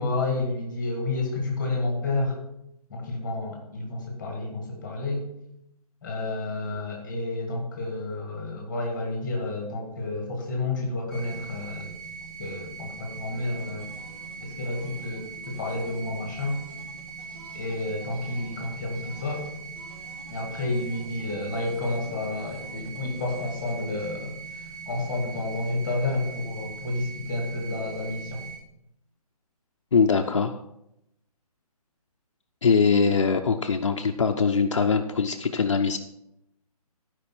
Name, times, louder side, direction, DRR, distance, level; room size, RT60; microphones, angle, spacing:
voice 1, 0.0-2.4 2.9-5.3 6.0-11.9 12.4-13.9 14.4-16.6 17.5-19.5 20.3-28.4, left 2 dB, 5° left, 0 dB, 1.5 m, -30 dB
sound 1, 11.1-28.5, right 5 dB, 10° right, 4.3 m, -41 dB
sound 2, 13.5-24.1, left 1 dB, 70° right, 4.6 m, -51 dB
voice 2, 29.9-30.6 32.6-36.0, left 5 dB, 50° left, 4 dB, 0.6 m, -22 dB
12.0 x 5.2 x 5.9 m, 0.82 s
hypercardioid pair, 180°, 20 cm